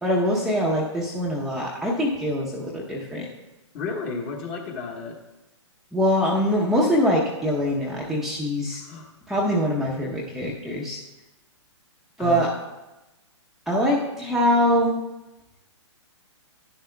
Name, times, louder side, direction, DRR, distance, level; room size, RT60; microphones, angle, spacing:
voice 1, 0.0-3.3 5.9-8.8 9.3-11.0 12.2-12.5 13.7-15.0, equal, ahead, -5 dB, 0.8 m, -23 dB
voice 2, 3.7-5.2 8.8-9.1 12.2-12.5, left 4 dB, 30° left, 1 dB, 1.3 m, -32 dB
11.0 x 10.0 x 2.2 m, 1.0 s
hypercardioid pair, 145°, 16 cm